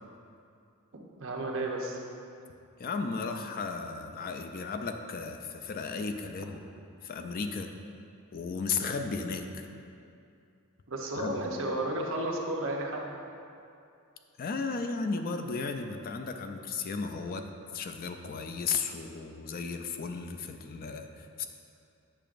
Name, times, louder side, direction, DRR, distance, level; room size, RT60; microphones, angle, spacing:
voice 1, 1.2-2.0 10.9-13.0, right 2 dB, 60° right, 0 dB, 0.8 m, -32 dB
voice 2, 2.8-6.6 7.0-7.7 8.3-9.7 11.2-11.5 14.4-17.5 17.7-21.4, left 4 dB, 40° left, 6 dB, 0.3 m, -35 dB
8.7 x 5.8 x 2.5 m, 2.5 s
head